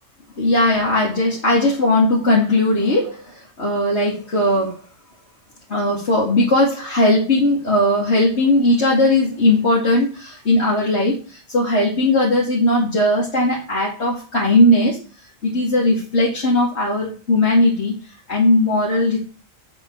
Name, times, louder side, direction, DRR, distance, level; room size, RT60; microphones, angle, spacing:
voice 1, 0.4-4.8 5.7-15.0 15.4-17.9 18.3-19.2, left 1 dB, 55° left, -5 dB, 2.9 m, -18 dB
7.6 x 7.4 x 4.7 m, 0.36 s
omnidirectional pair, 1.3 m